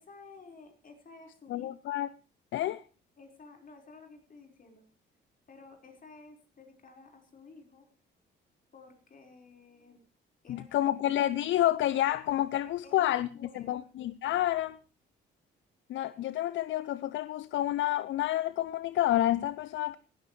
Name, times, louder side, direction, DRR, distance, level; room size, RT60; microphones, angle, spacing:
voice 1, 0.0-1.7 3.2-4.8 5.5-7.9 8.7-10.0 10.4-10.9 12.8-13.9, left 3 dB, 45° left, 4.7 m, -53 dB
voice 2, 1.5-2.1 2.5-2.8 10.5-13.3 13.5-14.8 15.9-20.0, left 13 dB, 70° left, 0.5 m, -29 dB
17.5 x 13.0 x 3.2 m
cardioid pair, 90°, 20 cm